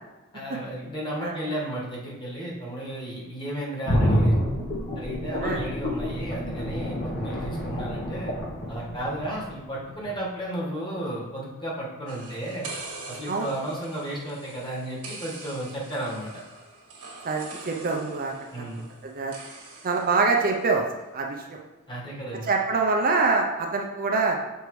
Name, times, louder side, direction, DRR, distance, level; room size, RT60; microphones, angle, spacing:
voice 1, 0.3-4.4 4.9-8.3 8.7-12.7 13.1-16.3 18.5-18.8 21.9-22.5, right 1 dB, 20° left, -5 dB, 1.5 m, -33 dB
sound 1, 3.8-9.7 10.0-10.1, equal, 50° left, 1.1 m, -27 dB
sound 2, 12.1-20.8, right 3 dB, 70° right, 1.4 m, -43 dB
voice 2, 17.2-18.6 19.0-19.3 19.8-20.8 21.1-21.6 22.5-24.4, right 4 dB, 40° right, 1 dB, 0.6 m, -25 dB
6.8 x 4.5 x 3.2 m, 1.1 s
head